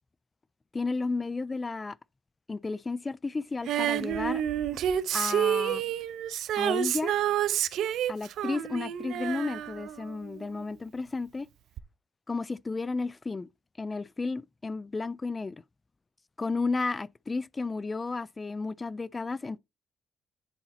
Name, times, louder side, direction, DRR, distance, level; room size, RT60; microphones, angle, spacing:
voice 1, 0.7-2.0 2.5-4.4 5.1-5.8 6.5-7.1 8.1-11.5 12.3-13.5 13.8-15.6 16.4-19.6, left 3 dB, 25° left, 0.3 m, -32 dB
Female singing, 3.7-10.6 11.8-11.9, right 10 dB, 80° right, 0.5 m, -29 dB
9.9 x 4.0 x 4.1 m
cardioid pair, 90°, 0 cm